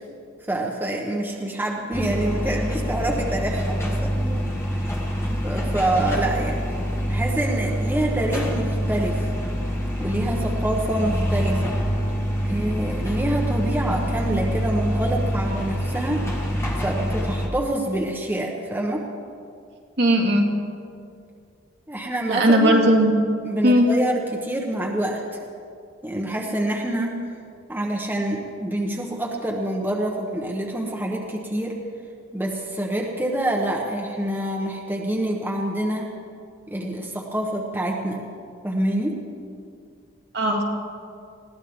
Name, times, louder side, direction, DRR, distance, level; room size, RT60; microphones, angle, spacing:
voice 1, 0.4-4.4 5.4-6.6 7.1-9.3 10.0-11.8 12.4-19.0 21.9-22.8 23.4-25.4 26.0-27.2 27.7-31.8 32.3-36.1 36.7-38.2 38.6-39.2, right 1 dB, 10° right, -1 dB, 1.1 m, -26 dB
sound 1, 1.9-17.5, equal, 15° left, 1.5 m, -25 dB
voice 2, 20.0-20.4 22.3-23.1 23.6-23.9 40.3-40.6, right 1 dB, 55° right, 0 dB, 2.1 m, -17 dB
21.0 x 15.5 x 3.7 m, 2.3 s
head